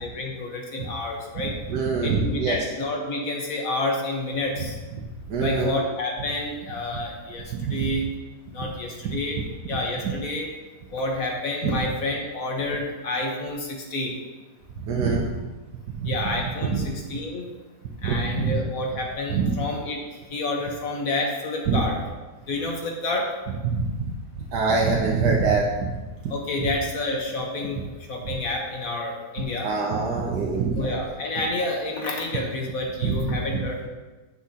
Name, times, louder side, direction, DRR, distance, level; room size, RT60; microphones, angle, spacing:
voice 1, 0.0-1.5 2.0-4.7 5.4-8.1 8.5-10.5 10.9-14.1 16.0-17.5 18.0-20.0 20.3-22.0 22.5-23.3 26.3-27.8 28.1-29.7 30.7-33.9, left 2 dB, 60° left, 0 dB, 1.5 m, -29 dB
voice 2, 1.7-2.7 4.6-4.7 5.3-5.8 7.5-7.9 9.0-9.4 10.0-10.1 11.6-11.7 14.8-15.2 16.0-16.4 16.7-16.8 18.0-18.5 19.3-19.5 21.7-21.9 23.6-26.0 26.2-26.3 26.6-26.7 29.6-31.0 33.0-33.6, right 4 dB, 80° right, -1 dB, 1.3 m, -25 dB
9.7 x 6.1 x 2.8 m, 1.2 s
omnidirectional pair, 1.7 m